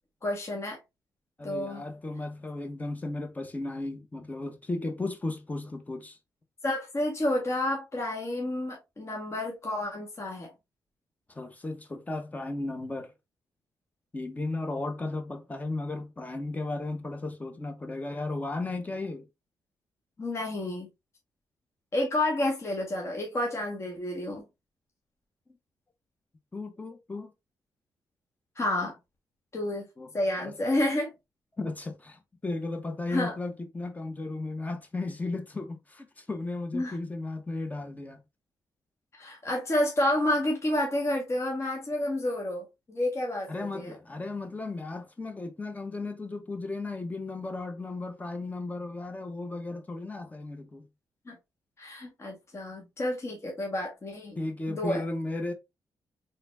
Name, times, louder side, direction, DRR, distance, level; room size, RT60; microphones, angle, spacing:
voice 1, 0.2-0.8 1.4-1.8 6.6-10.5 20.2-20.9 21.9-24.4 28.6-28.9 29.5-29.8 30.1-31.1 33.1-33.3 36.7-37.0 39.2-44.0 51.3-51.4 51.8-54.4 54.7-55.0, left 1 dB, 40° left, 1.7 m, -30 dB
voice 2, 1.4-6.2 11.3-13.1 14.1-19.2 26.5-27.3 30.0-30.1 30.4-30.6 31.6-38.2 43.5-50.9 54.4-55.5, left 2 dB, 20° left, 1.2 m, -35 dB
4.2 x 3.9 x 2.7 m
cardioid pair, 75°, 7 cm